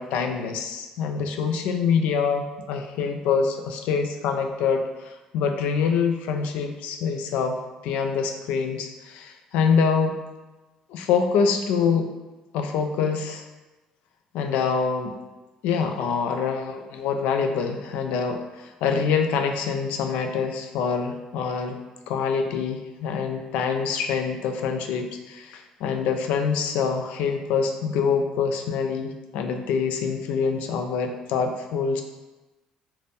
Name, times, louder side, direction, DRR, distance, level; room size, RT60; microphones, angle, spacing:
voice 1, 0.0-7.6 7.8-10.2 10.9-12.1 12.5-13.4 14.3-15.2 15.6-21.8 22.1-32.0, left 6 dB, 90° left, 5 dB, 0.4 m, -25 dB
4.0 x 2.2 x 3.4 m, 1.1 s
cardioid pair, 110°, 2 cm